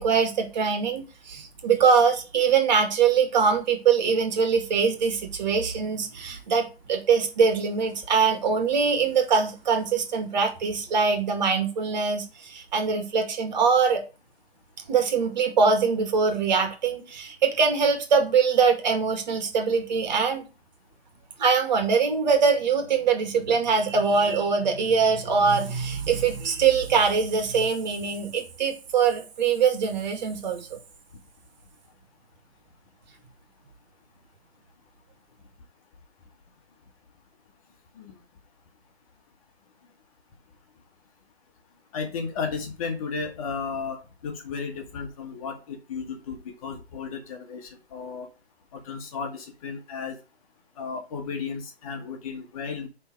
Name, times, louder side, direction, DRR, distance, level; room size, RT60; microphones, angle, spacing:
voice 1, 0.0-14.0 14.9-20.4 21.4-30.8, right 5 dB, 45° right, 2.3 m, -23 dB
voice 2, 41.9-48.3 48.7-50.2 50.8-52.9, left 5 dB, 35° left, 1.5 m, -34 dB
9.8 x 3.7 x 4.7 m
figure-of-eight pair, 140°, 32 cm